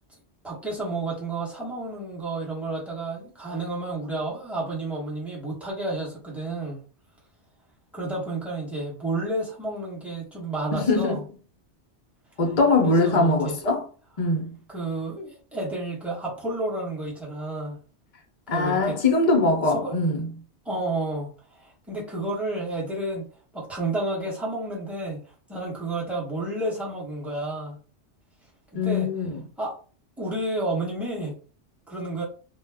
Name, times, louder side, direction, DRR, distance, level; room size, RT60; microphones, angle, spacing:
voice 1, 0.4-6.8 7.9-11.2 12.8-13.6 14.7-17.8 18.5-19.0 19.4-19.5 19.7-19.9 20.6-23.2 23.5-25.2 25.5-27.8 28.7-29.1 29.6-29.8 30.2-31.3 31.9-32.2, right 2 dB, ahead, 0.9 m, -31 dB
voice 2, 10.7-11.2 12.4-13.9 14.2-14.5 18.5-20.3 28.7-29.4, left 2 dB, 50° left, 0.5 m, -22 dB
2.3 x 2.1 x 3.3 m
omnidirectional pair, 1.2 m